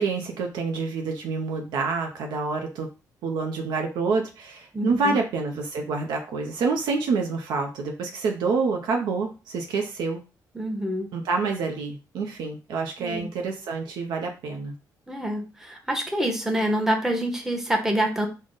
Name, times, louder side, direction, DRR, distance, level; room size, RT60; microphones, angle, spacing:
voice 1, 0.0-2.9 3.2-10.2 11.1-14.7, right 4 dB, 85° right, 3 dB, 0.5 m, -27 dB
voice 2, 4.7-5.2 10.5-11.1 13.0-13.3 15.1-18.3, equal, 5° right, 2 dB, 0.8 m, -26 dB
3.5 x 2.1 x 3.7 m, 0.31 s
cardioid pair, 95°, 7 cm